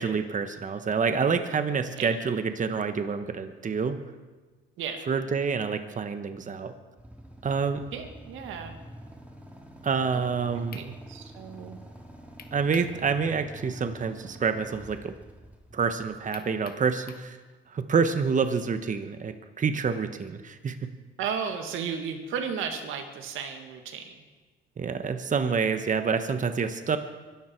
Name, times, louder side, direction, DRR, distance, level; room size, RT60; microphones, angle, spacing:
voice 1, 0.0-4.0 5.1-6.7 7.4-7.8 9.8-10.8 12.5-15.1 15.7-17.4 17.7-20.9 24.8-27.0, right 5 dB, 40° right, 8 dB, 1.2 m, -27 dB
Motorcycle / Idling, 7.0-16.9, right 1 dB, 5° right, 3.3 m, -47 dB
voice 2, 7.9-8.8 10.1-11.8 21.2-24.2, right 6 dB, 90° right, 5 dB, 2.1 m, -35 dB
sound 1, 10.7-10.9 12.4-13.0 13.3-13.4 16.3-17.3, left 6 dB, 50° left, 1.5 m, -46 dB
24.0 x 13.0 x 4.6 m, 1.3 s
cardioid pair, 90°, 20 cm